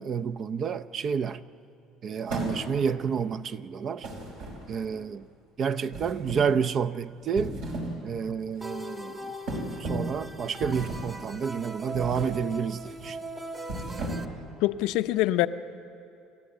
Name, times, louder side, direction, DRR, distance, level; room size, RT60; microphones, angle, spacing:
voice 1, 0.0-1.4 2.0-4.1 4.7-5.3 5.6-7.6 8.0-9.3 9.8-13.2, right 6 dB, 45° right, 0.6 m, -29 dB
sound 1, 2.3-3.0 4.0-4.9 5.9-6.6 7.2-8.0 8.4-8.6 9.5-10.2 10.6-11.2 11.9-12.4 12.8-13.1 13.6-14.5, right 1 dB, 70° right, 4.8 m, -35 dB
sound 2, 8.6-14.2, right 1 dB, 20° right, 1.2 m, -40 dB
voice 2, 14.6-15.5, left 16 dB, 75° left, 0.6 m, -24 dB
29.5 x 13.0 x 8.0 m
supercardioid pair, 100°, 0 cm